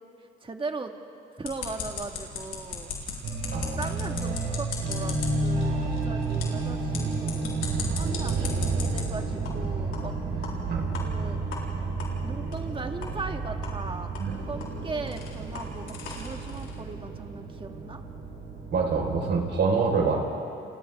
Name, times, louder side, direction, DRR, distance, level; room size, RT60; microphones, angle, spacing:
voice 1, 0.4-0.9 1.4-2.9 3.6-10.6 10.9-11.4 12.2-14.1 14.5-18.0, right 3 dB, 25° right, 4 dB, 1.9 m, -38 dB
sound 1, 1.4-9.0 9.4-9.5 9.9-10.0 10.4-10.5 10.9-11.0 11.5-11.6 12.0-12.1 12.5-12.6 13.0-13.1 13.6-13.7 14.1-16.8, left 5 dB, 80° left, 4.3 m, -38 dB
sound 2, 3.2-19.6, right 3 dB, 90° right, 5.1 m, -31 dB
voice 2, 3.5-4.3 10.7-10.8 14.2-14.3 18.7-20.2, right 4 dB, 60° right, 1 dB, 4.8 m, -26 dB
30.0 x 29.0 x 3.7 m, 2.6 s
cardioid pair, 90°, 20 cm